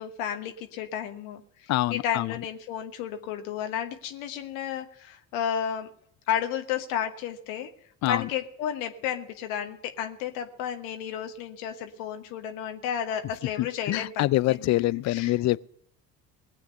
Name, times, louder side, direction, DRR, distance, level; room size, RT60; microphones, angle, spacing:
voice 1, 0.0-5.9 6.3-7.7 8.0-15.4, left 9 dB, 70° left, 1.3 m, -32 dB
voice 2, 1.7-2.3 8.0-8.3 13.6-15.6, left 16 dB, 40° left, 0.5 m, -25 dB
19.5 x 7.8 x 6.6 m
hypercardioid pair, 60°, 42 cm